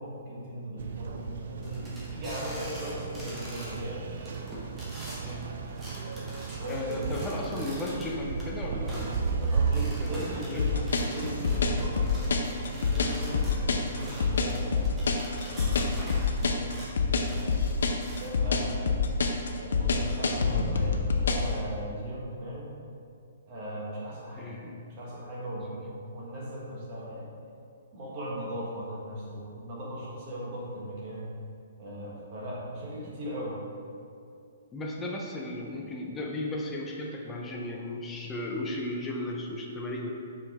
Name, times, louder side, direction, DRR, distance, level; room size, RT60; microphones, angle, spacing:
voice 1, 0.0-4.3 6.6-7.7 9.6-15.0 15.4-17.8 18.2-19.1 19.6-22.7 23.4-24.5 24.9-27.3 27.9-31.3 31.8-33.6, equal, 30° right, -5 dB, 1.4 m, -38 dB
sound 1, 0.8-11.9, right 5 dB, 50° right, 0.5 m, -34 dB
sound 2, 1.6-3.8 4.1-8.4 8.9-16.9 17.2-18.3, equal, 10° right, 1.0 m, -45 dB
voice 2, 5.2-5.6 6.7-10.7 24.4-24.8 34.7-40.1, left 2 dB, 10° left, -1 dB, 0.5 m, -36 dB
sound 3, 10.6-21.5, left 5 dB, 70° left, 0.7 m, -26 dB
7.0 x 5.4 x 3.5 m, 2.4 s
hypercardioid pair, 175°, 0 cm